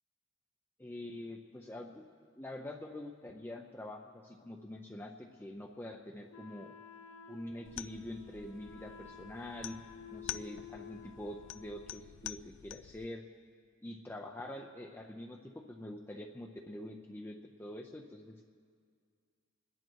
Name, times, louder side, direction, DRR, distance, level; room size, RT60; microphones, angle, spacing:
voice 1, 0.8-2.0 2.4-6.8 7.3-9.8 10.1-13.2 13.8-15.4 15.7-18.4, left 1 dB, 10° left, 1 dB, 0.6 m, -45 dB
Wind instrument woodwind instrument, 6.3-12.2, left 6 dB, 80° left, 0.8 m, -53 dB
sound 1, 7.6-13.1, left 12 dB, 60° left, 0.3 m, -47 dB
27.0 x 10.5 x 4.6 m, 2.1 s
head